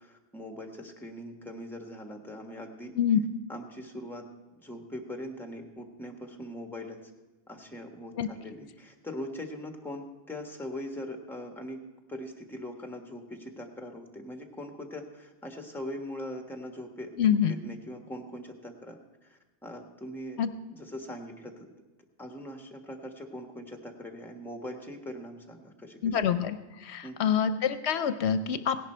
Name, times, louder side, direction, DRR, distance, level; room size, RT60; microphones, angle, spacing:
voice 1, 0.0-2.9 3.5-4.2 4.6-7.1 7.5-11.8 12.1-20.4 20.7-21.5 22.2-26.2 27.0-27.3, left 1 dB, ahead, 4 dB, 1.3 m, -41 dB
voice 2, 17.2-17.5 20.4-20.5 26.0-26.6 26.8-28.8, left 8 dB, 75° left, 11 dB, 0.9 m, -26 dB
17.0 x 11.0 x 4.4 m, 1.2 s
omnidirectional pair, 1.2 m